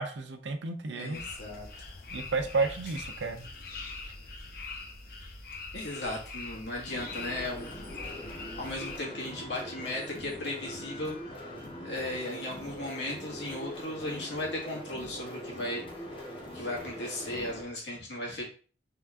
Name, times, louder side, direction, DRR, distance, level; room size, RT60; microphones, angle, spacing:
voice 1, 0.0-1.2 2.1-3.5, right 4 dB, 85° right, 6 dB, 0.7 m, -31 dB
voice 2, 0.9-1.7 5.7-7.7 8.6-11.2 11.8-15.8 16.5-18.4, left 1 dB, 80° left, -3 dB, 1.8 m, -36 dB
sound 1, 1.1-9.0, left 3 dB, 55° left, 0.8 m, -43 dB
sound 2, 6.9-17.6, equal, 30° left, 1.0 m, -42 dB
3.7 x 3.5 x 3.6 m, 0.40 s
head